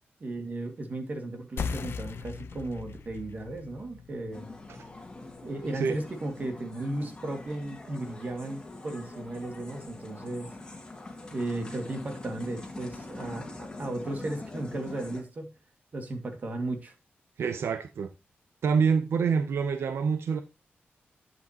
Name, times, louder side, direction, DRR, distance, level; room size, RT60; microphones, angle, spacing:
voice 1, 0.2-4.5 5.4-10.5 11.3-15.5 15.9-16.9, right 2 dB, 40° right, 2.2 m, -35 dB
sound 1, 1.6-6.7, left 5 dB, 70° left, 0.8 m, -40 dB
sound 2, 4.3-15.2, left 2 dB, 20° left, 2.2 m, -44 dB
voice 2, 17.4-18.1 18.6-20.4, right 6 dB, 75° right, 0.7 m, -26 dB
11.0 x 7.8 x 3.0 m
wide cardioid pair, 145°, 4 cm